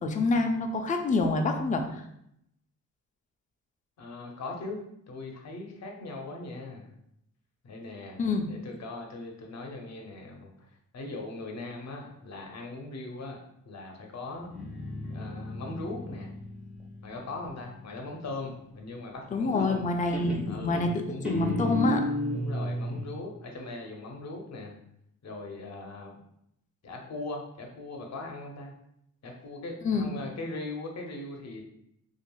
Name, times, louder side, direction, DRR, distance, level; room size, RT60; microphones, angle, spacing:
voice 1, 0.0-2.0 8.2-8.5 19.3-22.0 29.8-30.1, left 3 dB, 25° left, 4 dB, 0.4 m, -27 dB
voice 2, 4.0-4.8 5.1-6.9 7.6-8.2 8.5-10.5 10.9-13.4 13.6-14.5 15.1-16.3 17.0-19.8 20.4-21.2 22.3-24.8 25.2-26.2 26.8-28.7 29.2-31.6, left 2 dB, 50° left, 2 dB, 0.7 m, -40 dB
Guitar, 14.4-18.0 19.5-19.9 20.1-23.1, left 1 dB, 5° right, 0.7 m, -34 dB
2.9 x 2.4 x 2.2 m, 0.76 s
cardioid pair, 60°, 34 cm